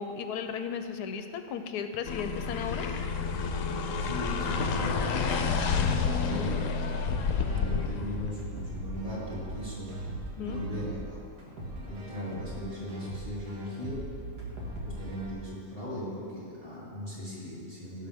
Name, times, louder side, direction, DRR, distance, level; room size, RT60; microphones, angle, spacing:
voice 1, 0.0-2.9 3.2-3.3 10.4-10.6, left 7 dB, 85° left, 8 dB, 1.2 m, -35 dB
sound 1, 2.0-8.3, left 5 dB, 65° left, 0.9 m, -29 dB
sound 2, 3.3-15.3, right 1 dB, 80° right, 2.2 m, -40 dB
voice 2, 4.0-6.6 7.4-9.9 10.4-14.1 14.8-18.1, left 1 dB, 20° right, -8 dB, 2.8 m, -38 dB
17.0 x 6.2 x 3.5 m, 2.3 s
omnidirectional pair, 1.7 m